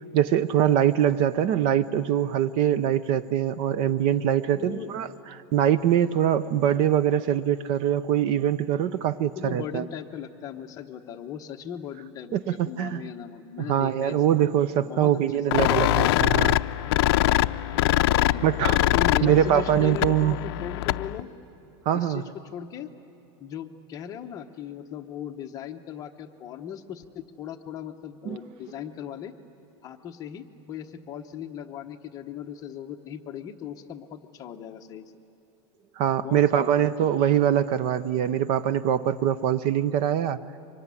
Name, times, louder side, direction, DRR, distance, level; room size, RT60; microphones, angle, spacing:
voice 1, 0.1-5.1 5.5-9.9 12.3-13.0 13.7-16.6 18.4-18.8 19.2-20.3 21.9-22.2 28.3-28.4 36.0-40.4, right 10 dB, 40° right, 15 dB, 0.6 m, -23 dB
voice 2, 4.5-4.9 9.3-14.2 14.8-15.8 18.3-21.3 21.9-22.9 23.4-29.3 29.8-35.0 36.2-37.1, left 9 dB, 25° left, 5 dB, 1.0 m, -38 dB
sound 1, 15.5-21.2, left 16 dB, 65° left, 0.5 m, -23 dB
25.0 x 22.0 x 9.8 m, 3.0 s
supercardioid pair, 165°, 14 cm